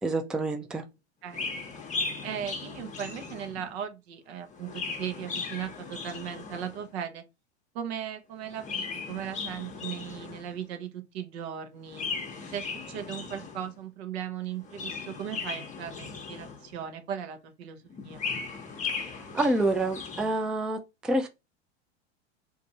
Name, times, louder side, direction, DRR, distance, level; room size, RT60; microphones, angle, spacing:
voice 1, 0.0-0.8 19.0-21.3, right 2 dB, ahead, 0.3 m, -28 dB
Chirp tweet, 1.3-3.8 4.4-6.9 8.4-10.6 11.9-13.8 14.5-16.8 17.9-20.4, left 5 dB, 20° left, 0.8 m, -37 dB
voice 2, 2.2-7.2 7.7-12.1 12.5-18.2, right 9 dB, 65° right, 0.9 m, -37 dB
2.7 x 2.5 x 4.1 m
hypercardioid pair, 100°, 34 cm